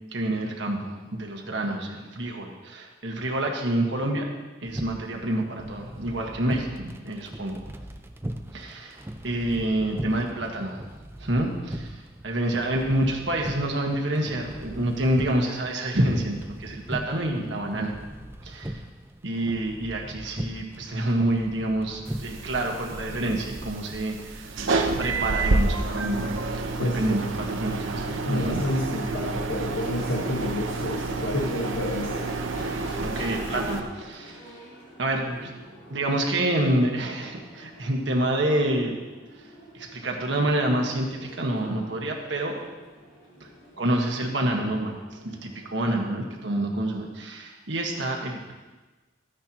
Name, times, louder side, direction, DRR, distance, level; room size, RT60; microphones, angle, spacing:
voice 1, 0.1-4.3 4.6-7.6 8.5-10.8 11.2-17.9 18.4-18.8 19.2-24.5 25.0-26.3 26.5-28.6 33.0-34.4 35.0-35.5 35.9-38.9 39.7-42.6 43.4-43.5 43.8-45.0 45.2-48.5, right 1 dB, 65° right, 0 dB, 1.5 m, -27 dB
sound 1, 4.7-23.7, right 1 dB, 10° right, 0.5 m, -39 dB
sound 2, 22.0-33.8, right 3 dB, 90° right, 0.9 m, -29 dB
voice 2, 28.1-32.3, left 1 dB, 90° left, -1 dB, 1.3 m, -29 dB
Crowd / Race car auto racing / Accelerating revving vroom, 29.7-46.7, equal, 70° left, 3.7 m, -46 dB
14.0 x 10.0 x 3.0 m, 1.2 s
head